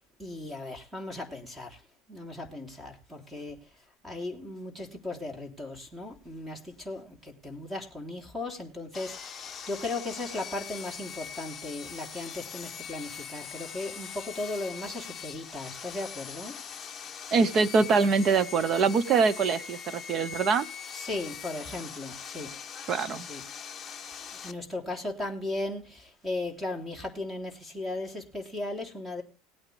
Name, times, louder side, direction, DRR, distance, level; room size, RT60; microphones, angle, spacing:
voice 1, 0.2-1.8 2.1-3.7 4.0-16.6 20.9-22.5 23.1-23.4 24.3-29.2, left 2 dB, 5° right, 3.5 m, -37 dB
Sawing, 8.9-24.5, left 7 dB, 20° left, 1.2 m, -42 dB
voice 2, 17.3-20.7 22.9-23.2, right 5 dB, 35° right, 1.2 m, -24 dB
19.5 x 8.9 x 3.4 m
supercardioid pair, 140°, 0 cm